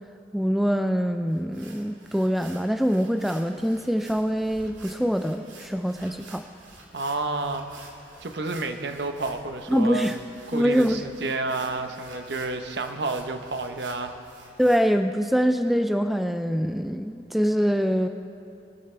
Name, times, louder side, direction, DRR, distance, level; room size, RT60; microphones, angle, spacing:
voice 1, 0.3-6.4 9.7-10.2 10.5-11.0 14.6-18.1, equal, ahead, 7 dB, 0.3 m, -24 dB
sound 1, 1.3-14.8, right 3 dB, 90° right, 2.3 m, -49 dB
voice 2, 6.9-7.7 8.2-10.1 10.5-14.1, right 3 dB, 70° right, 6 dB, 0.9 m, -30 dB
21.5 x 12.5 x 3.3 m, 2.7 s
head